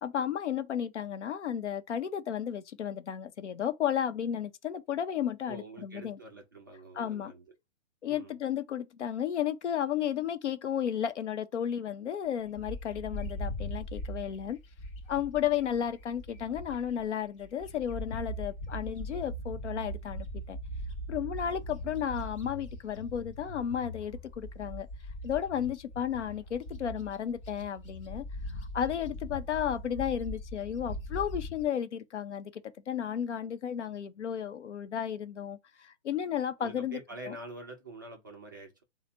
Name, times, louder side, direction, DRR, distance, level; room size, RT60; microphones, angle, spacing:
voice 1, 0.0-6.2 7.0-7.3 8.0-14.6 15.1-20.6 21.1-24.9 25.2-28.2 28.7-37.4, left 9 dB, 75° left, 0.7 m, -33 dB
voice 2, 5.5-7.5 8.1-8.4 36.6-38.8, right 2 dB, 20° right, 0.3 m, -46 dB
Bird, 12.6-17.0 17.4-31.6, equal, 25° left, 0.6 m, -40 dB
3.2 x 2.0 x 4.0 m
hypercardioid pair, 140°, 35 cm